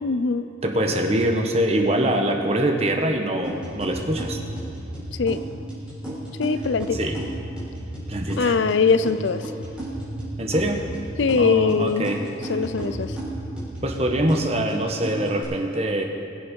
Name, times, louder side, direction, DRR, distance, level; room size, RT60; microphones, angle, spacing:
voice 1, 0.0-0.5 5.2-5.4 6.4-7.0 8.4-9.4 11.2-12.1 12.5-13.1, left 5 dB, 70° left, 13 dB, 0.5 m, -21 dB
voice 2, 0.6-4.4 6.9-7.2 8.1-8.6 10.4-10.8 11.4-12.2 13.8-16.0, right 1 dB, 30° right, 3 dB, 1.1 m, -24 dB
sound 1, 3.4-15.4, right 1 dB, 5° right, 4.1 m, -33 dB
21.0 x 7.6 x 5.4 m, 2.5 s
head